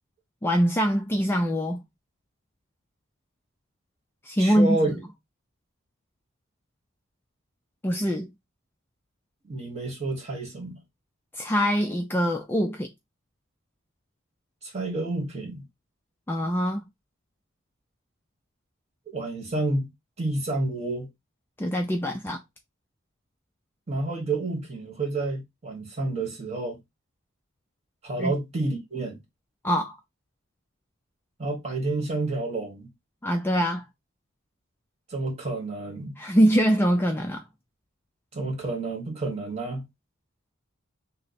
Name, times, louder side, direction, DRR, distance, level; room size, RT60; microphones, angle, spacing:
voice 1, 0.4-1.8 4.3-4.8 7.8-8.3 11.4-12.9 16.3-16.8 21.6-22.4 28.2-28.3 29.6-30.0 33.2-33.8 36.2-37.4, equal, 10° left, 0.3 m, -23 dB
voice 2, 4.4-4.9 9.4-10.8 14.6-15.6 19.1-19.9 20.2-21.1 23.9-26.8 28.0-29.2 31.4-32.9 35.1-36.1 38.3-39.8, right 2 dB, 30° right, 1.4 m, -29 dB
3.2 x 2.0 x 4.1 m
head